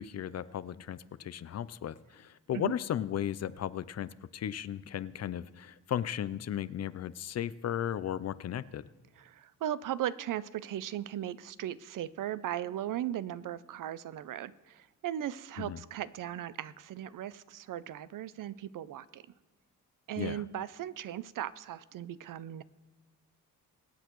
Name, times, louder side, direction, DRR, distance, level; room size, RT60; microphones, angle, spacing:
voice 1, 0.0-8.8 15.6-15.8 20.2-20.4, left 10 dB, 50° left, 17 dB, 0.5 m, -35 dB
voice 2, 9.2-19.2 20.1-22.6, right 11 dB, 70° right, 17 dB, 0.5 m, -37 dB
23.5 x 8.1 x 3.1 m, 1.2 s
cardioid pair, 90°, 34 cm